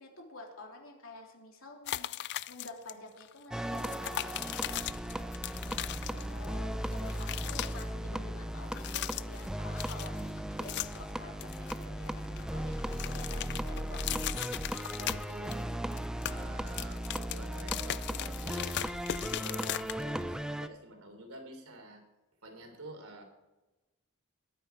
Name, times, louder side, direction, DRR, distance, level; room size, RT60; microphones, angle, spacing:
voice 1, 0.0-2.1 2.5-4.7 6.1-14.4, left 2 dB, 65° left, 1 dB, 3.1 m, -49 dB
sound 1, 1.9-2.9 3.2-3.3 3.7-6.6 6.8-7.8 8.6-9.5 9.8-11.1 11.4-12.4 12.7-15.6 15.9-20.2, left 13 dB, 50° left, 0.4 m, -38 dB
sound 2, 3.5-20.7, equal, 5° right, 0.5 m, -37 dB
sound 3, 4.7-20.4, equal, 35° right, 2.2 m, -50 dB
voice 2, 5.5-5.8 15.0-15.6 16.3-18.8 19.1-22.0 22.4-23.2, right 1 dB, 80° right, 5 dB, 3.4 m, -49 dB
21.0 x 9.2 x 4.6 m, 1.1 s
head